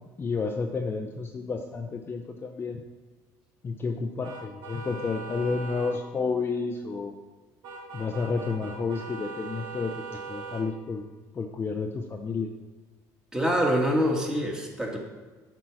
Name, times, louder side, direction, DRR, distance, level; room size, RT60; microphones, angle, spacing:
voice 1, 0.2-2.8 3.6-7.1 7.9-11.0 11.3-12.5, left 4 dB, 30° left, 4 dB, 0.7 m, -31 dB
sound 1, 4.2-6.0 7.6-10.7, right 4 dB, 65° right, 2.6 m, -40 dB
voice 2, 13.3-15.0, equal, 10° right, -1 dB, 1.9 m, -25 dB
8.1 x 4.5 x 6.2 m, 1.3 s
cardioid pair, 110°, 8 cm